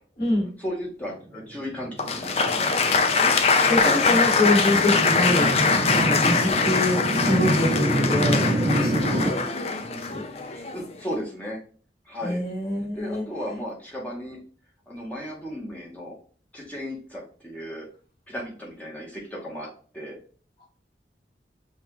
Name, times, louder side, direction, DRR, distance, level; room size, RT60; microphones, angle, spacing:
voice 1, 0.6-3.0 5.7-6.4 8.9-9.1 10.5-11.6 12.0-12.4 12.9-14.4 14.9-16.2 16.5-17.9 18.3-19.7 19.9-20.2, equal, 10° left, -4 dB, 1.0 m, -35 dB
sound 1, 1.6-9.3, right 1 dB, 40° right, 0.5 m, -27 dB
Applause, 2.0-10.9, left 4 dB, 35° left, 0.4 m, -23 dB
voice 2, 3.7-5.5 5.9-9.5 9.8-10.2 12.2-13.2, left 1 dB, 55° left, -6 dB, 2.1 m, -25 dB
5.4 x 2.4 x 3.0 m, 0.43 s
head